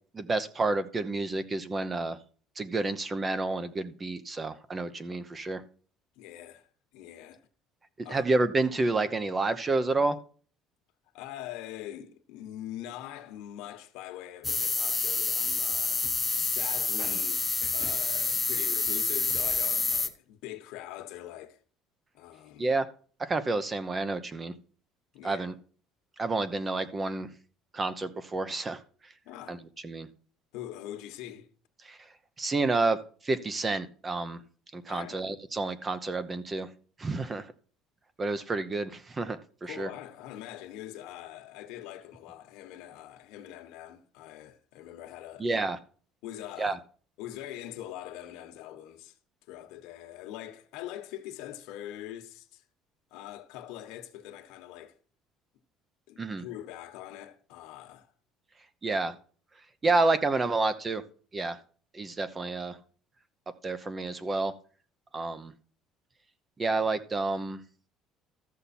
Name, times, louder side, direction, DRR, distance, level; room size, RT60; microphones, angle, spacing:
voice 1, 0.1-2.2 2.6-5.6 8.0-10.2 22.6-22.9 23.2-24.5 25.2-25.5 26.2-27.3 27.7-28.8 29.5-29.6 29.8-30.1 31.8-32.0 32.4-34.4 34.7-36.7 37.0-37.5 38.2-39.9 45.4-45.8 46.6-46.8 56.2-56.4 58.8-59.2 59.8-61.0 61.3-61.6 61.9-62.8 63.6-64.5 65.1-65.5 66.6-67.6, right 3 dB, 20° right, 0.8 m, -29 dB
voice 2, 6.1-7.4 8.0-8.3 11.1-17.4 17.7-21.6 22.1-22.7 25.1-25.5 29.2-29.6 30.5-31.5 34.9-35.2 39.6-45.6 46.2-46.8 47.2-49.2 49.5-52.6 53.1-55.0 56.1-58.1 59.8-60.0, left 12 dB, 80° left, 1.3 m, -43 dB
sound 1, 14.4-20.1, left 4 dB, 15° left, 0.9 m, -28 dB
13.5 x 6.9 x 4.3 m
cardioid pair, 130°, 0 cm